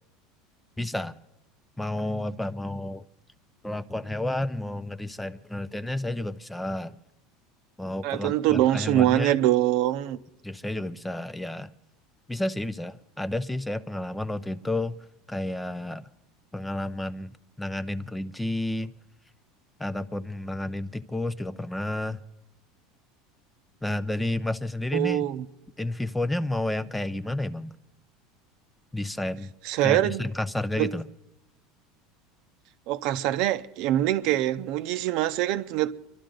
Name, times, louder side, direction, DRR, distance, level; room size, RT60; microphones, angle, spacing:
voice 1, 0.8-1.2 1.8-3.0 3.6-7.0 7.8-9.4 10.4-11.7 12.3-15.0 15.3-16.1 16.5-18.9 19.8-22.2 23.8-25.3 25.8-27.7 28.9-29.5 29.8-31.1, left 1 dB, 5° left, 0.5 m, -31 dB
voice 2, 8.0-10.2 24.9-25.4 29.6-30.2 30.8-30.9 32.9-35.9, right 13 dB, 60° right, 0.7 m, -24 dB
25.0 x 11.5 x 3.9 m
supercardioid pair, 125°, 0 cm